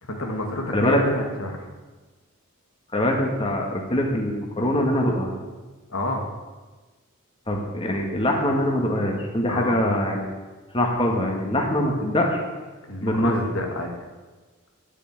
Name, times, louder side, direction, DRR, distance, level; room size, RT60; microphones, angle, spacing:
voice 1, 0.0-1.7 5.9-6.3 9.5-9.8 12.9-13.9, left 1 dB, 75° left, 1 dB, 2.3 m, -29 dB
voice 2, 2.9-5.3 7.5-10.3 10.7-12.4 13.0-13.4, left 1 dB, 25° left, 0 dB, 1.9 m, -23 dB
9.9 x 8.4 x 9.9 m, 1.3 s
head